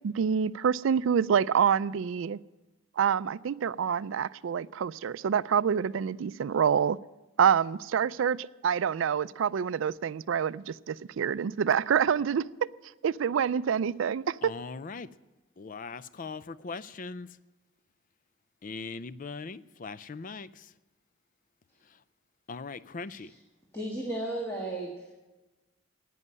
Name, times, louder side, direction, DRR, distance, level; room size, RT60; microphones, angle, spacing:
voice 1, 0.0-2.4 3.0-7.0 7.4-12.5 13.0-14.5, right 7 dB, 70° right, 0.4 m, -27 dB
voice 2, 14.4-15.1 15.6-17.3 18.6-20.6 22.5-23.3, left 4 dB, 40° left, 0.4 m, -40 dB
voice 3, 23.7-25.1, right 1 dB, 15° left, 1.7 m, -35 dB
11.0 x 9.4 x 9.6 m
head